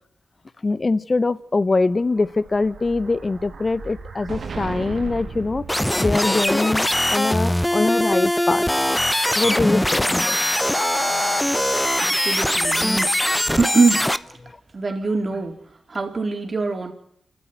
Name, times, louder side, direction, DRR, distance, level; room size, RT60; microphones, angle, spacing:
voice 1, 0.6-5.7 6.0-8.6 9.3-10.4 11.6-11.7 14.4-14.5 15.3-15.4, left 3 dB, 40° left, 18 dB, 0.9 m, -23 dB
Explosion, 1.9-6.5, right 4 dB, 70° right, 2.4 m, -36 dB
sound 1, 5.7-14.2, left 1 dB, 10° left, 0.8 m, -21 dB
voice 2, 12.0-13.2 13.6-14.2 14.7-15.6 15.9-16.9, right 4 dB, 50° right, 5 dB, 3.6 m, -23 dB
28.5 x 12.5 x 9.3 m, 0.72 s
supercardioid pair, 45°, 0 cm